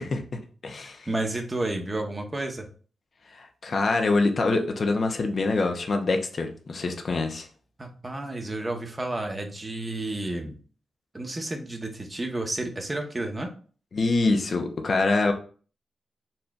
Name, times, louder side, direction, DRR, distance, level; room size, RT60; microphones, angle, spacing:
voice 1, 0.0-1.1 3.3-7.5 13.9-15.3, left 3 dB, 60° left, 4 dB, 0.7 m, -25 dB
voice 2, 1.1-2.7 7.8-10.6 11.1-13.5, right 2 dB, 30° right, 4 dB, 1.0 m, -31 dB
4.2 x 3.3 x 2.4 m, 0.40 s
supercardioid pair, 50°, 0 cm